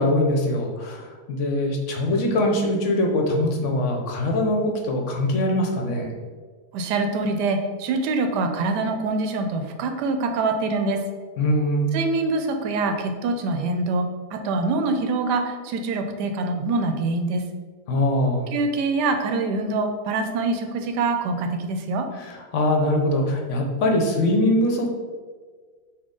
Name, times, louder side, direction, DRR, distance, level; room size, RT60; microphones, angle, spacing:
voice 1, 0.0-6.1 11.4-11.9 17.9-18.5 22.1-24.9, left 1 dB, 60° left, 2 dB, 0.8 m, -22 dB
voice 2, 6.7-11.0 11.9-17.4 18.5-22.1, right 3 dB, 85° right, 5 dB, 1.2 m, -25 dB
5.9 x 2.4 x 3.6 m, 1.5 s
omnidirectional pair, 1.8 m